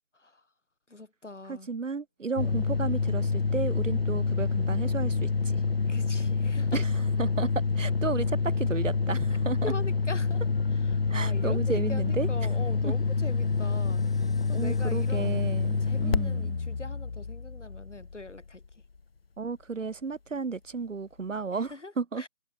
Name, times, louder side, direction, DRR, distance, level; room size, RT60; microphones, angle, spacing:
voice 1, 0.9-1.7 2.4-2.6 5.9-6.8 9.6-10.4 10.8-14.0 14.5-15.5 15.8-18.6 21.7-22.3, left 2 dB, 70° left, 5.9 m, -42 dB
voice 2, 1.5-5.6 6.7-9.7 11.1-12.5 12.8-12.9 14.5-16.6 19.4-22.3, right 4 dB, 85° right, 1.1 m, -33 dB
sound 1, 2.4-18.7, left 4 dB, 55° left, 0.5 m, -27 dB
sound 2, 3.1-16.8, left 4 dB, 5° left, 1.4 m, -57 dB
figure-of-eight pair, 175°, 37 cm